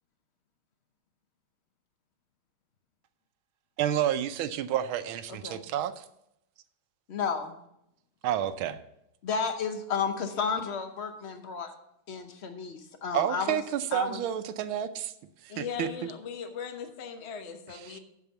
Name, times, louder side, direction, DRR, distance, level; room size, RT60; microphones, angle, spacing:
voice 1, 3.8-6.0 8.2-8.8 13.1-15.1 15.4-15.9 17.7-18.0, right 10 dB, 75° right, 11 dB, 1.4 m, -30 dB
voice 2, 7.1-7.5 9.2-11.7 12.1-13.6 13.9-14.2, left 6 dB, 75° left, 7 dB, 0.6 m, -32 dB
voice 3, 15.5-18.0, left 7 dB, 40° left, 5 dB, 1.0 m, -38 dB
8.4 x 7.1 x 6.9 m, 0.79 s
omnidirectional pair, 2.4 m